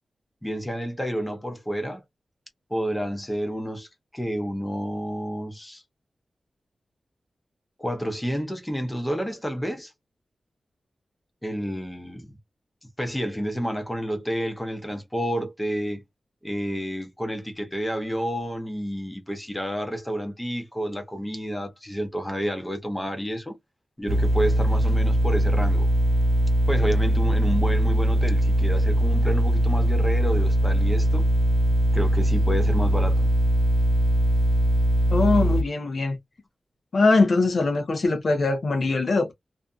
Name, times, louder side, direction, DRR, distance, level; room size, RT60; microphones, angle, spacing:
voice 1, 0.4-2.0 2.7-3.9 4.1-5.8 7.8-9.9 11.4-12.3 13.0-16.0 16.4-23.6 24.0-25.9 26.7-31.3 31.9-33.3, equal, 10° left, 0.7 m, -30 dB
sound 1, 24.1-35.6, right 1 dB, 75° right, 0.3 m, -21 dB
voice 2, 35.1-36.2 36.9-39.3, left 3 dB, 60° left, 0.6 m, -22 dB
2.5 x 2.5 x 2.2 m
wide cardioid pair, 140°, 0 cm